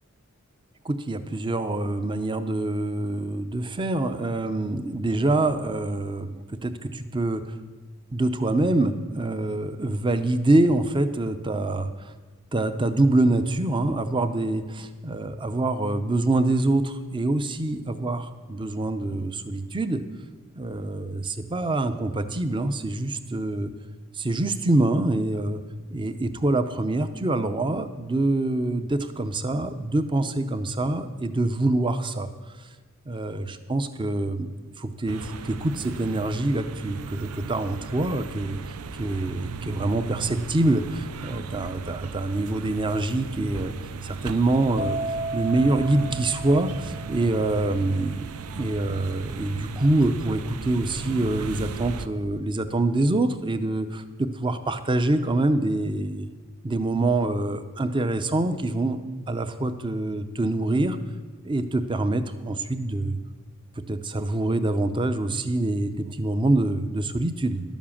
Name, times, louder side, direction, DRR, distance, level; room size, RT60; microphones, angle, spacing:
voice 1, 0.8-7.6 8.1-12.1 12.5-20.0 20.6-23.7 24.1-25.6 25.9-32.3 32.6-32.7 33.1-43.7 44.0-45.0 45.3-56.3 56.6-59.0 59.3-61.0 61.4-63.2 63.9-67.6, right 2 dB, 20° right, 11 dB, 0.6 m, -25 dB
sound 1, 35.1-52.1, right 4 dB, 85° right, 0.5 m, -37 dB
sound 2, 44.8-52.3 52.6-53.1, right 2 dB, 50° right, 0.9 m, -36 dB
11.5 x 7.3 x 7.2 m, 1.3 s
head